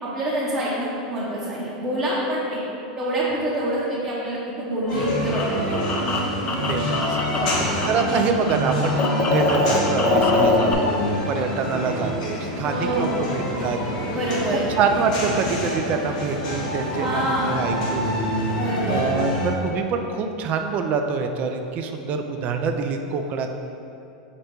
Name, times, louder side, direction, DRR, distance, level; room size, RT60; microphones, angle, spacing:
voice 1, 0.0-2.6 3.0-5.8 7.3-7.6 12.6-13.1 14.1-14.6 17.0-17.6 18.6-19.1, right 1 dB, 20° right, -9 dB, 0.8 m, -26 dB
sound 1, 4.8-8.2 8.4-10.7, left 3 dB, 30° left, 0.4 m, -24 dB
sound 2, 4.9-19.5, equal, 80° left, 1.2 m, -27 dB
voice 2, 6.7-7.2 7.9-13.8 14.5-18.3 18.9-23.5, right 5 dB, 40° right, 5 dB, 0.3 m, -26 dB
5.0 x 2.2 x 4.3 m, 2.7 s
supercardioid pair, 125°, 4 cm